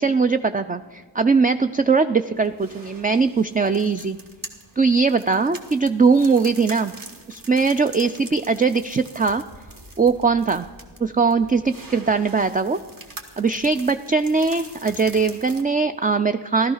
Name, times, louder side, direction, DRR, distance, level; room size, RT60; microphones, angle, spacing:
voice 1, 0.0-4.2 4.8-6.9 7.3-9.4 10.0-10.6 11.0-12.8 13.4-16.7, right 4 dB, 20° right, 9 dB, 0.4 m, -20 dB
sound 1, 2.3-15.6, right 2 dB, 45° right, 1.6 m, -43 dB
14.0 x 12.5 x 5.6 m, 1.4 s
cardioid pair, 50°, 48 cm